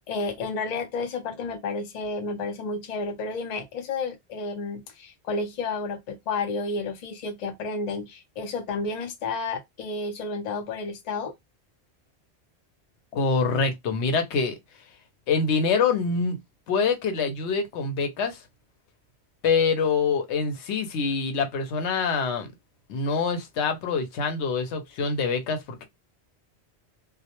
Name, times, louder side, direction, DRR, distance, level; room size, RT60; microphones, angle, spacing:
voice 1, 0.0-11.3, left 3 dB, 50° left, 0.6 m, -31 dB
voice 2, 13.1-14.6 15.3-16.4 16.7-18.4 19.4-22.5 22.9-25.8, left 5 dB, 90° left, 0.9 m, -25 dB
2.1 x 2.1 x 2.8 m
omnidirectional pair, 1.1 m